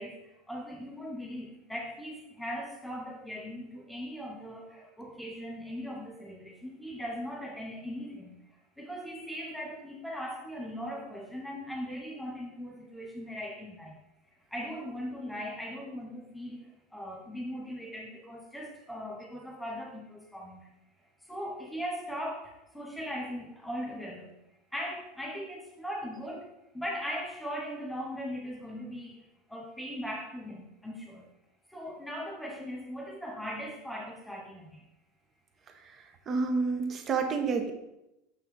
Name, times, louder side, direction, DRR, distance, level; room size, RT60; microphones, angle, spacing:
voice 1, 0.0-8.4 8.8-14.0 14.5-20.7 21.2-24.3 24.7-31.3 31.7-34.9, equal, 5° left, -2 dB, 2.1 m, -39 dB
voice 2, 36.3-37.7, right 4 dB, 30° right, 5 dB, 1.0 m, -28 dB
6.7 x 5.8 x 3.8 m, 0.89 s
figure-of-eight pair, 75°, 0 cm